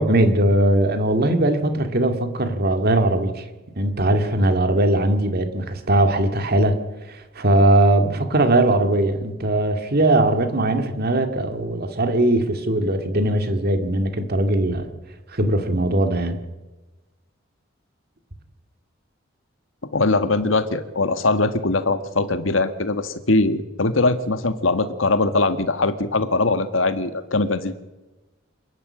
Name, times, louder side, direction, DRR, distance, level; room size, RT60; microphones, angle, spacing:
voice 1, 0.0-3.4 3.8-6.8 7.1-14.9 15.3-16.4, right 1 dB, 50° right, 7 dB, 2.3 m, -20 dB
voice 2, 19.9-27.7, left 3 dB, 80° left, 10 dB, 1.7 m, -21 dB
27.5 x 11.5 x 8.7 m, 1.1 s
head